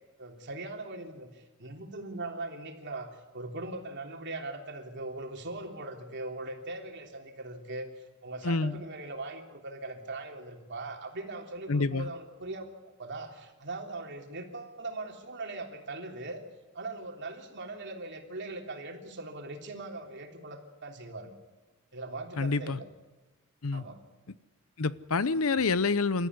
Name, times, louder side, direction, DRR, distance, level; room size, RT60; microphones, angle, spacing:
voice 1, 0.2-12.6 13.0-16.4 16.7-21.3 21.9-22.8 23.7-24.0, right 2 dB, 55° right, 3.4 m, -40 dB
voice 2, 8.4-8.8 11.7-12.1 22.4-22.8 23.6-23.8 24.8-26.3, left 4 dB, 75° left, 0.8 m, -27 dB
27.5 x 14.0 x 9.6 m
head